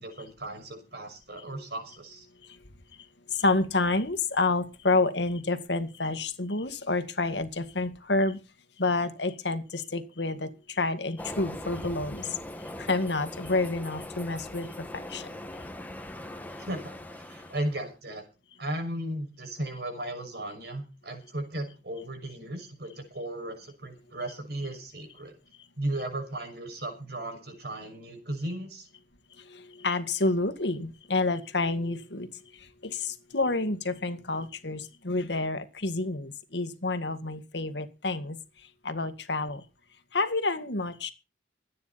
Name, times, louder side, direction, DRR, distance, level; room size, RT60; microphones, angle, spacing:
voice 1, 0.0-2.3 16.6-18.2 18.6-25.4 25.8-28.9, right 1 dB, 65° right, 6.3 m, -36 dB
voice 2, 3.3-8.4 8.8-12.3 12.8-15.3 29.5-38.4 38.8-39.6 40.1-41.1, left 3 dB, 75° left, 2.0 m, -29 dB
Train, 11.2-17.9, left 1 dB, 10° left, 1.7 m, -41 dB
25.0 x 9.7 x 4.2 m
head